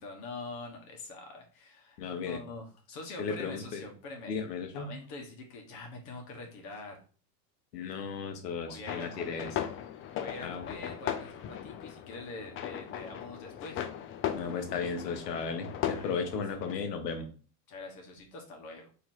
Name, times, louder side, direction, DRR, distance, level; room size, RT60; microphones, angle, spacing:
voice 1, 0.0-4.4 4.7-7.0 8.6-9.5 10.1-13.8 15.9-16.3 17.7-18.9, left 3 dB, 50° left, 1 dB, 1.3 m, -44 dB
voice 2, 2.0-2.4 3.2-3.8 4.3-4.9 7.7-9.5 10.4-10.6 14.3-17.3, left 5 dB, 90° left, 5 dB, 1.1 m, -35 dB
sound 1, 8.9-16.8, left 10 dB, 30° left, 0.4 m, -38 dB
3.1 x 3.0 x 4.3 m, 0.39 s
hypercardioid pair, 100°, 47 cm